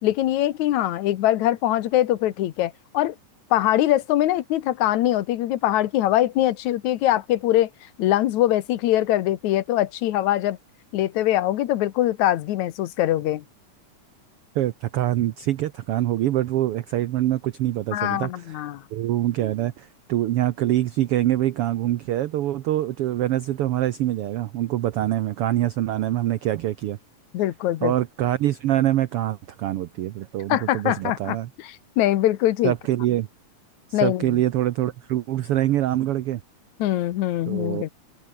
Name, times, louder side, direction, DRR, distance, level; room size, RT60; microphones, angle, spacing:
voice 1, 0.0-3.2 3.5-7.7 8.0-10.6 10.9-13.4 17.9-18.8 27.3-27.9 30.5-32.7 33.9-34.4 36.8-37.9, left 13 dB, 70° left, 2.3 m, -22 dB
voice 2, 14.5-18.6 18.9-27.0 27.8-31.5 32.6-33.3 33.9-36.4 37.5-37.8, right 13 dB, 80° right, 1.3 m, -24 dB
open air
omnidirectional pair, 3.6 m